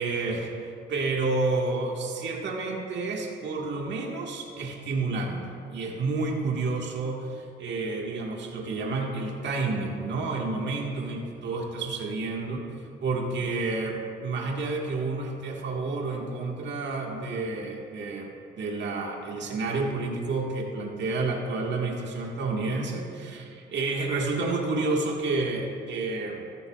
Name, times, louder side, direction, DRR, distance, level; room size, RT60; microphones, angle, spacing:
voice 1, 0.0-5.4 5.7-12.6 13.0-26.4, right 3 dB, 65° right, 0 dB, 1.8 m, -30 dB
15.0 x 13.5 x 2.4 m, 2.5 s
cardioid pair, 90°, 20 cm